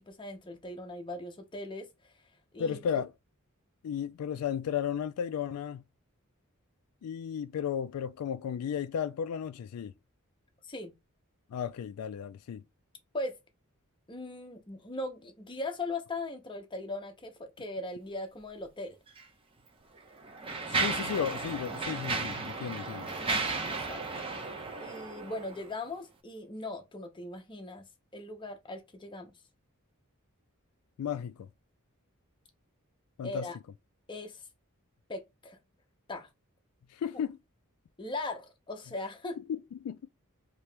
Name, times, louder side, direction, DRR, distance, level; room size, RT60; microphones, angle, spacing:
voice 1, 0.0-2.1 2.5-2.8 10.6-10.9 13.1-13.4 14.1-19.0 23.9-24.0 24.8-27.8 28.1-29.3 33.2-33.6 34.1-34.4 35.1-35.6 36.1-36.3 38.0-39.4, left 2 dB, 20° left, 0.7 m, -39 dB
voice 2, 2.6-3.1 3.8-5.8 7.0-9.9 11.5-12.6 20.7-23.1 31.0-31.5 33.2-33.5 36.9-37.4 39.5-40.1, left 8 dB, 80° left, 0.3 m, -34 dB
Mechanisms, 19.1-19.2 20.0-25.7, right 3 dB, 25° right, 0.7 m, -34 dB
2.9 x 2.8 x 3.3 m
head